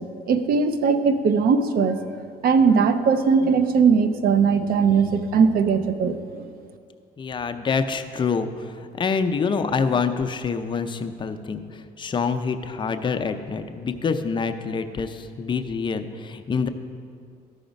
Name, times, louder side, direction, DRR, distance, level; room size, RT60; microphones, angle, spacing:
voice 1, 0.0-2.0 2.4-6.5, right 5 dB, 60° right, 10 dB, 0.6 m, -20 dB
voice 2, 7.2-16.7, left 5 dB, 30° left, 8 dB, 0.5 m, -26 dB
13.0 x 4.9 x 5.2 m, 2.3 s
cardioid pair, 110°, 17 cm